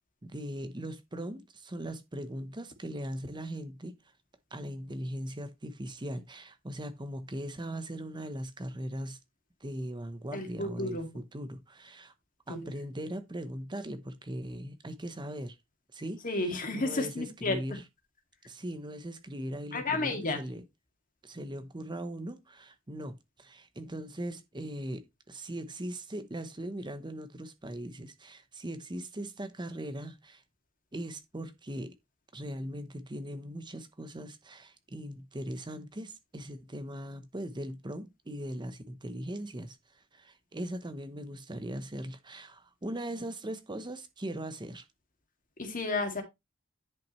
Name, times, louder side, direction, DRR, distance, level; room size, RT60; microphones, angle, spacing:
voice 1, 0.2-4.1 4.5-9.2 9.6-12.1 12.5-15.6 15.9-17.8 18.4-20.6 21.2-30.4 30.9-31.9 32.3-44.9, right 1 dB, 20° right, 0.8 m, -40 dB
voice 2, 10.3-11.1 12.5-12.7 16.2-17.8 19.7-20.4 45.6-46.2, left 2 dB, 40° left, 2.3 m, -32 dB
10.5 x 5.8 x 3.1 m
head